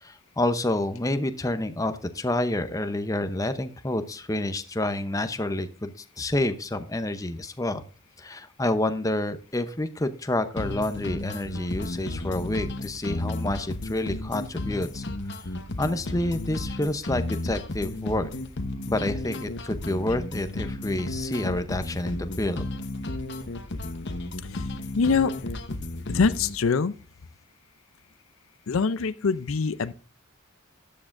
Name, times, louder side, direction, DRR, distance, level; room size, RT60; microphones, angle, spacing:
voice 1, 0.0-5.9 6.2-7.8 8.2-15.0 15.3-15.4 15.8-18.3 18.9-22.7, left 1 dB, 15° left, 0.7 m, -28 dB
sound 1, 10.6-26.6, left 2 dB, 55° left, 1.0 m, -33 dB
voice 2, 25.0-25.3 26.1-26.9 28.7-29.9, left 5 dB, 70° left, 0.5 m, -23 dB
13.0 x 8.6 x 2.5 m
head